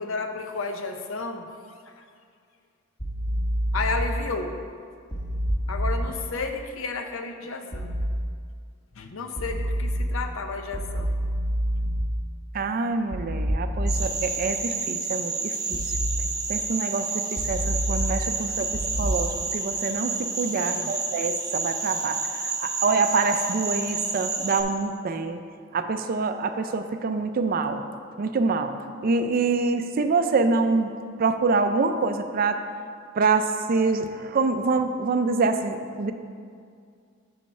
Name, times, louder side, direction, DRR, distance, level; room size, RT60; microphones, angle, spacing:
voice 1, 0.0-1.5 1.9-2.0 3.7-4.6 5.7-7.9 9.0-11.2 20.6-20.9, left 4 dB, 70° left, 6 dB, 0.6 m, -32 dB
sound 1, 3.0-4.0 5.1-6.0 7.7-8.0 9.4-10.0 10.7-12.0 13.1-14.0 15.7-16.0 17.4-18.0 18.7-19.1, equal, 20° left, 1.1 m, -27 dB
voice 2, 12.5-15.9 16.5-25.4 25.7-27.8 28.2-28.8 29.0-30.9 31.2-32.6 33.1-36.1, right 4 dB, 45° right, 8 dB, 0.4 m, -26 dB
sound 2, 13.9-24.6, right 4 dB, 15° right, 0.8 m, -30 dB
7.3 x 5.3 x 4.3 m, 2.2 s
head